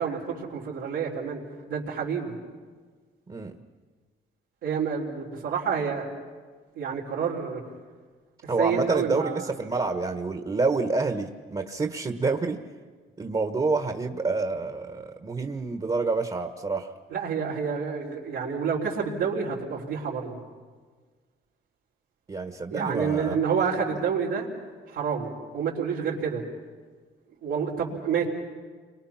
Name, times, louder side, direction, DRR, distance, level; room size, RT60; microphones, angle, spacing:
voice 1, 0.0-1.4 1.7-2.3 4.6-6.1 6.7-7.6 8.4-9.5 17.1-20.4 22.7-24.5 24.9-26.4 27.4-28.3, right 6 dB, 90° right, -5 dB, 3.9 m, -28 dB
voice 2, 8.5-12.6 13.2-16.9 22.3-23.4, right 3 dB, 25° right, 6 dB, 1.4 m, -28 dB
29.5 x 23.5 x 5.9 m, 1.5 s
cardioid pair, 90°, 20 cm